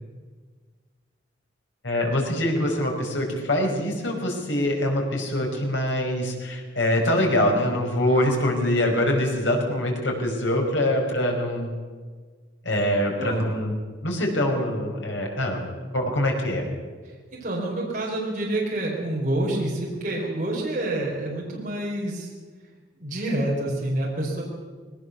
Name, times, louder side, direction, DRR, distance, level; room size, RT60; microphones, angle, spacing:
voice 1, 1.8-11.7 12.6-13.7 14.0-15.6 15.9-16.7, left 1 dB, 80° left, 1 dB, 5.4 m, -24 dB
voice 2, 17.0-22.3 22.9-24.4, right 1 dB, 40° right, -3 dB, 4.7 m, -28 dB
20.5 x 18.5 x 7.0 m, 1.5 s
head